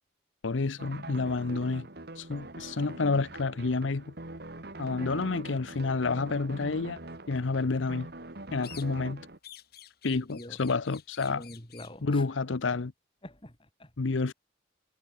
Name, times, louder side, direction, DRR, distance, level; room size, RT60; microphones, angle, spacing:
voice 1, 0.4-1.9 2.2-4.1 4.8-7.0 7.3-8.1 8.5-9.2 10.0-11.4 12.0-12.9 14.0-14.3, left 3 dB, 85° left, 0.7 m, -29 dB
sound 1, 0.8-9.4, right 2 dB, 55° right, 2.2 m, -43 dB
voice 2, 4.8-5.2 10.1-10.6 11.3-12.3 13.2-13.9, left 1 dB, 30° left, 5.3 m, -46 dB
sound 2, 8.6-9.1 9.4-12.0, left 12 dB, 55° left, 2.2 m, -51 dB
head